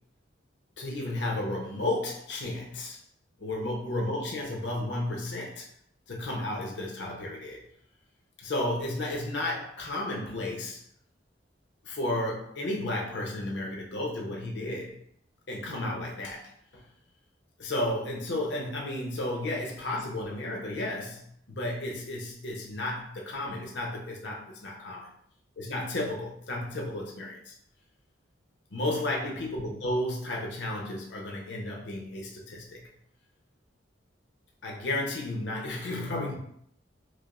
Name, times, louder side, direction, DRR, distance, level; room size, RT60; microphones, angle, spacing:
voice 1, 0.8-3.0 3.4-5.7 6.1-7.6 8.4-10.8 11.8-14.9 15.5-16.8 17.6-25.1 25.6-27.5 28.7-32.9 34.6-36.4, left 1 dB, 65° left, -1 dB, 0.7 m, -33 dB
4.9 x 2.0 x 2.4 m, 0.68 s
head